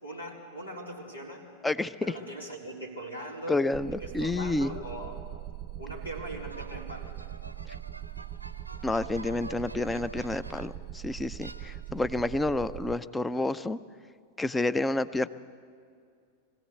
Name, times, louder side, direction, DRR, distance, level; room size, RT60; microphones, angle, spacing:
voice 1, 0.0-1.5 2.0-3.6 4.0-5.2 5.8-7.1, right 1 dB, 85° left, -2 dB, 4.1 m, -40 dB
voice 2, 1.6-2.1 3.5-4.7 7.7-7.8 8.8-13.8 14.4-15.3, left 2 dB, 10° left, 16 dB, 0.6 m, -29 dB
sound 1, 3.7-13.0, right 12 dB, 30° right, 0.5 m, -41 dB
sound 2, 6.5-10.9 11.4-12.2, right 2 dB, 85° right, 0.8 m, -48 dB
23.5 x 17.0 x 8.1 m, 2.2 s
figure-of-eight pair, 90°, 0 cm